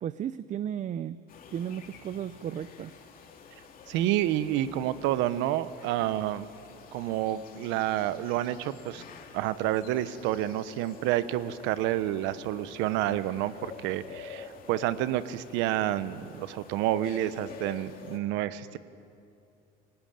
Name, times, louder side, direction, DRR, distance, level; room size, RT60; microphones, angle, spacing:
voice 1, 0.0-1.2 1.5-2.9, right 9 dB, 40° right, 15 dB, 0.6 m, -34 dB
sound 1, 1.3-18.2, left 6 dB, 50° left, 2.6 m, -48 dB
voice 2, 3.9-6.5 6.9-9.0 9.3-18.8, right 13 dB, 80° right, 14 dB, 1.0 m, -29 dB
21.0 x 18.5 x 9.2 m, 2.5 s
cardioid pair, 110°, 19 cm